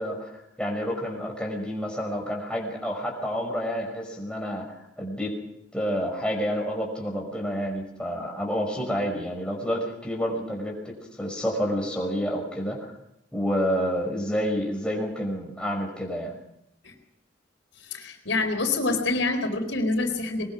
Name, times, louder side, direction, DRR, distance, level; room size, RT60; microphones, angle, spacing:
voice 1, 0.0-5.3 5.7-12.9 13.3-16.4, equal, 5° left, 0 dB, 5.5 m, -29 dB
voice 2, 17.9-20.5, left 3 dB, 85° left, 4 dB, 4.4 m, -26 dB
22.0 x 21.5 x 6.2 m, 0.79 s
head